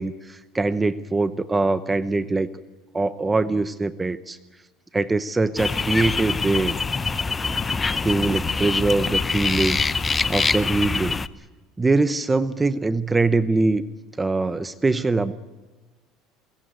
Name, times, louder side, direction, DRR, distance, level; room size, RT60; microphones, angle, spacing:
voice 1, 0.0-2.5 2.9-4.4 4.9-6.7 8.0-9.8 10.3-11.2 11.8-13.8 14.2-15.3, right 3 dB, 15° right, 14 dB, 0.8 m, -22 dB
sound 1, 5.6-11.3, left 4 dB, 20° left, 0.7 m, -24 dB
21.5 x 19.0 x 9.3 m, 1.2 s
cardioid pair, 135°, 0 cm